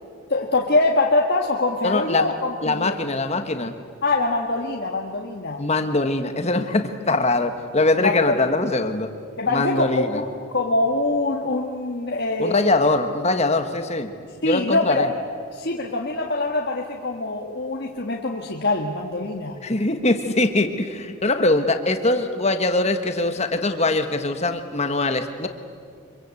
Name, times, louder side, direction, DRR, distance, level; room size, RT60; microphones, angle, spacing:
voice 1, 0.3-3.0 4.0-5.7 8.0-8.5 9.4-10.2 10.5-12.7 14.4-15.1 15.5-19.5, left 2 dB, 50° left, -1 dB, 1.7 m, -24 dB
voice 2, 1.8-2.3 2.6-3.7 5.6-9.1 9.5-10.2 12.4-14.1 14.4-15.1 19.6-25.5, left 2 dB, 30° left, 7 dB, 1.3 m, -22 dB
25.5 x 23.0 x 8.4 m, 2.3 s
head